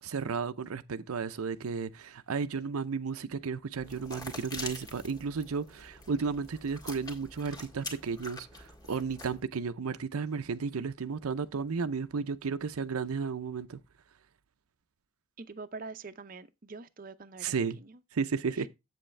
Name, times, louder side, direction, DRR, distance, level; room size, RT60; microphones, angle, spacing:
voice 1, 0.0-13.8 17.4-17.8 18.1-18.7, right 5 dB, 90° right, 0.6 m, -33 dB
sound 1, 3.8-9.4, left 2 dB, 15° left, 1.7 m, -45 dB
voice 2, 15.4-18.0 18.6-18.7, right 3 dB, 40° right, 0.6 m, -45 dB
7.9 x 7.7 x 3.2 m
head